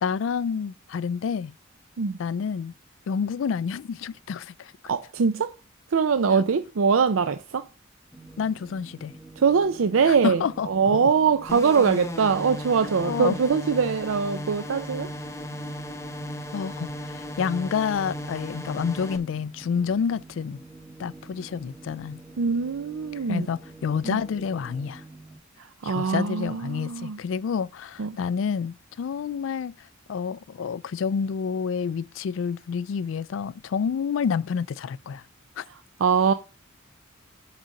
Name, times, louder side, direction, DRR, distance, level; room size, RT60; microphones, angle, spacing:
voice 1, 0.0-1.5 2.2-2.7 3.1-4.7 8.4-9.1 10.1-11.1 13.0-13.4 16.5-20.6 21.0-22.2 23.3-25.0 25.8-29.7 30.1-35.2 35.6-35.7, left 6 dB, 70° left, 0.3 m, -29 dB
voice 2, 4.9-5.5 5.9-7.6 9.4-15.1 22.4-23.5 24.1-24.2 25.6-27.2 28.0-28.2 36.0-36.3, right 5 dB, 90° right, 0.5 m, -23 dB
sound 1, 8.1-25.4, right 3 dB, 5° right, 1.5 m, -47 dB
sound 2, 11.5-19.2, left 1 dB, 15° left, 0.8 m, -36 dB
8.3 x 4.0 x 6.3 m
head